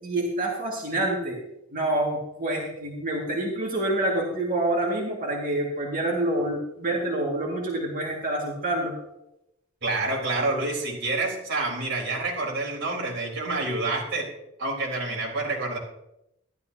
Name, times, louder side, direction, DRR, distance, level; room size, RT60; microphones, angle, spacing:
voice 1, 0.0-1.4 1.7-8.9, right 1 dB, 45° right, -2 dB, 2.0 m, -27 dB
voice 2, 9.8-14.3 14.6-15.8, right 2 dB, 60° right, -2 dB, 4.1 m, -28 dB
13.5 x 12.0 x 2.8 m, 0.86 s
head